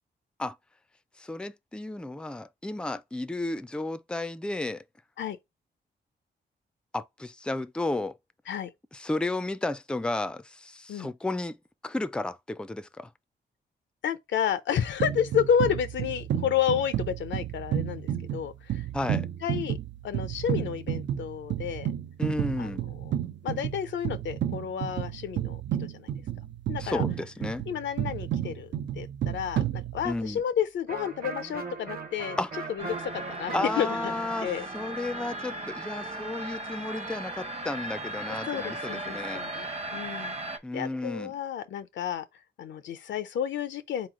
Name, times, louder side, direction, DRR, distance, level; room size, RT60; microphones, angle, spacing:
voice 1, 1.2-4.8 6.9-8.2 8.9-11.6 11.8-13.1 18.9-19.3 22.2-22.8 26.8-27.7 30.0-30.4 32.4-32.5 33.5-39.5 40.6-41.3, left 2 dB, 5° left, 0.4 m, -33 dB
voice 2, 14.0-18.9 19.4-19.8 20.0-21.9 22.6-22.8 23.4-26.1 26.7-27.0 27.7-32.4 32.7-34.0 34.4-34.7 38.5-42.3 42.6-44.1, left 8 dB, 85° left, 0.5 m, -31 dB
sound 1, 15.0-30.4, right 10 dB, 80° right, 0.6 m, -32 dB
Electric guitar, 30.9-36.5, right 4 dB, 50° right, 1.2 m, -40 dB
sound 2, 32.8-40.6, right 1 dB, 35° right, 0.9 m, -37 dB
3.9 x 3.0 x 3.7 m
cardioid pair, 75°, 19 cm